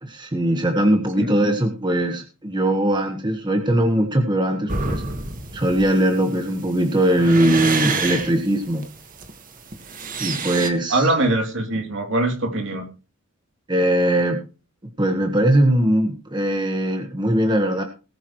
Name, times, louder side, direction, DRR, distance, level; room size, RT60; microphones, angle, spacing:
voice 1, 0.0-5.0 5.5-8.8 10.2-11.1 13.7-14.4 15.0-17.8, right 1 dB, 20° right, 4 dB, 1.5 m, -20 dB
sound 1, 4.7-10.7, right 4 dB, 40° right, 1.8 m, -27 dB
voice 2, 10.9-12.9, right 2 dB, 60° right, 3 dB, 3.3 m, -22 dB
19.5 x 9.4 x 3.2 m, 0.33 s
head